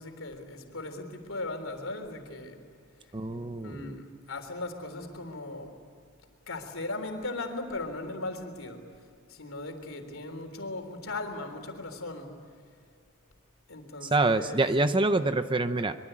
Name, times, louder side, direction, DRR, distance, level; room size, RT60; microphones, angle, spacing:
voice 1, 0.0-2.6 3.6-5.7 6.5-8.8 9.3-12.3 13.7-14.7, left 2 dB, 60° left, 5 dB, 3.5 m, -38 dB
voice 2, 3.1-4.0 14.0-16.0, right 2 dB, 20° right, 10 dB, 0.7 m, -26 dB
24.5 x 23.0 x 8.8 m, 2.2 s
head